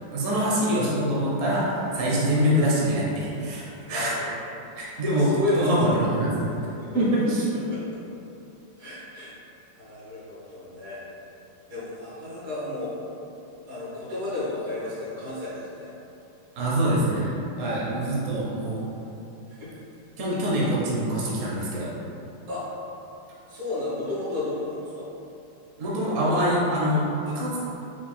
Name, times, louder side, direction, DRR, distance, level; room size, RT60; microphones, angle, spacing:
voice 1, 0.1-4.1 4.8-6.5 6.9-7.5 16.6-17.3 17.6-18.8 20.2-21.9 25.8-27.1 27.3-27.6, equal, 55° right, -6 dB, 0.9 m, -24 dB
voice 2, 3.8-4.3 5.1-6.0 6.4-7.0 7.7-8.0 8.8-9.3 9.8-11.0 11.7-12.9 13.7-15.9 19.5-19.8 22.5-22.6 23.5-25.1 27.3-27.4, left 2 dB, 80° right, -10 dB, 2.3 m, -32 dB
4.5 x 2.2 x 4.3 m, 2.8 s
omnidirectional pair, 2.3 m